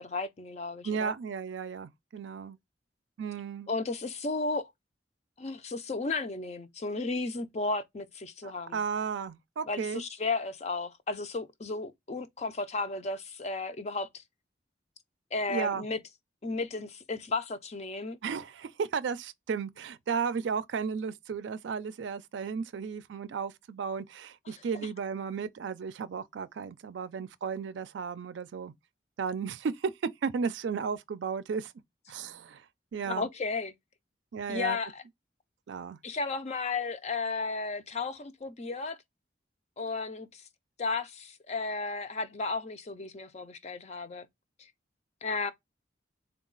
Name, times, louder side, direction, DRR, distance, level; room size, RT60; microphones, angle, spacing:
voice 1, 0.0-1.1 3.7-4.7 5.4-8.8 9.7-14.1 15.3-16.0 16.4-18.2 24.5-24.9 33.0-33.7 34.5-35.0 36.0-39.0 39.8-40.4 40.8-44.3 45.2-45.5, left 3 dB, 35° left, 0.5 m, -34 dB
voice 2, 0.8-2.6 3.2-3.7 8.4-10.0 15.5-15.8 18.2-28.7 29.2-29.9 30.2-31.7 32.1-32.6 32.9-33.3 34.3-34.8 35.7-36.0, right 6 dB, 80° right, 0.4 m, -34 dB
3.9 x 2.3 x 3.7 m
head